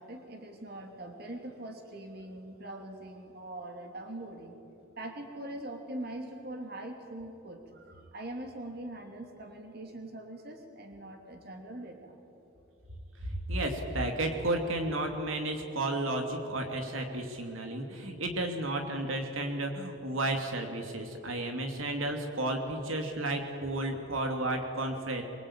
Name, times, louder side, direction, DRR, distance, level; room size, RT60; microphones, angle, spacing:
voice 1, 0.0-4.6 5.0-12.2, right 1 dB, 50° right, 3 dB, 2.9 m, -42 dB
voice 2, 13.3-25.2, right 1 dB, 75° right, 3 dB, 2.8 m, -32 dB
25.0 x 24.0 x 8.8 m, 2.9 s
head